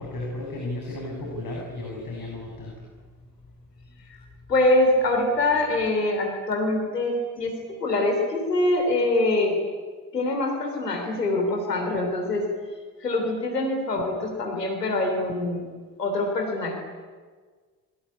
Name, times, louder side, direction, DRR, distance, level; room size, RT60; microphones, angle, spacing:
voice 1, 0.0-2.9, left 2 dB, 45° left, -1 dB, 8.0 m, -34 dB
voice 2, 4.5-9.6 10.1-12.5 13.0-15.7 16.0-16.8, left 2 dB, 90° left, 3 dB, 3.4 m, -24 dB
27.5 x 23.0 x 8.6 m, 1.5 s
figure-of-eight pair, 40°, 47 cm